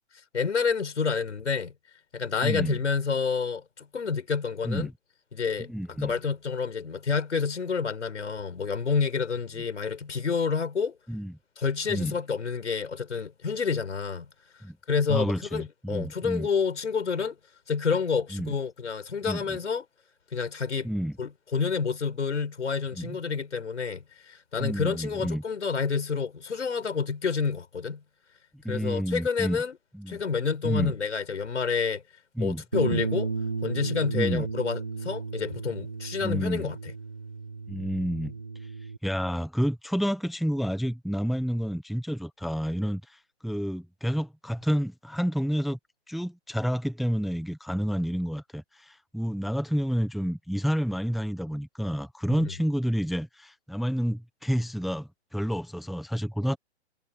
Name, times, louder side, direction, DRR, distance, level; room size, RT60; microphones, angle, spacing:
voice 1, 0.3-1.7 2.1-4.9 5.3-10.9 11.6-14.3 14.9-17.4 17.7-19.8 20.3-20.9 21.2-28.0 28.7-29.8 30.1-32.0 32.4-33.3 33.6-36.8 52.4-52.5, left 5 dB, 85° left, 5.0 m, -29 dB
voice 2, 2.4-2.8 4.6-4.9 5.7-6.1 11.1-11.3 11.9-12.1 14.6-14.8 15.1-16.5 18.3-18.5 19.2-19.6 20.8-21.2 22.9-23.2 24.6-25.4 28.5-29.6 29.9-30.2 30.6-30.9 32.4-32.6 32.9-33.0 34.1-34.5 36.2-36.7 37.7-38.3 39.0-45.8 46.1-56.6, equal, ahead, 0.8 m, -29 dB
Bass guitar, 32.7-39.0, right 4 dB, 15° right, 0.3 m, -33 dB
hypercardioid pair, 150°, 34 cm